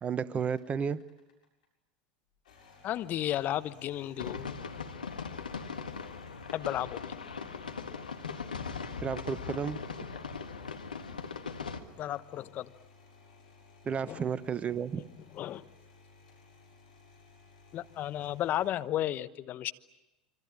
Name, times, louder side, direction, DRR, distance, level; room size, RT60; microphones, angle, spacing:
voice 1, 0.0-1.0 9.0-9.8 13.8-15.0, right 6 dB, 30° right, 16 dB, 1.1 m, -32 dB
sound 1, 0.5-1.7 2.3-18.7, left 4 dB, 70° left, 7.2 m, -58 dB
voice 2, 2.8-4.6 6.5-7.2 12.0-12.7 14.1-14.2 14.9-15.0 15.3-15.6 17.7-19.7, left 13 dB, 40° left, 13 dB, 1.1 m, -33 dB
Fireworks Finale, 4.2-11.8, left 5 dB, 85° left, 1.8 m, -39 dB
25.5 x 25.0 x 8.9 m, 0.99 s
hypercardioid pair, 85°, 4 cm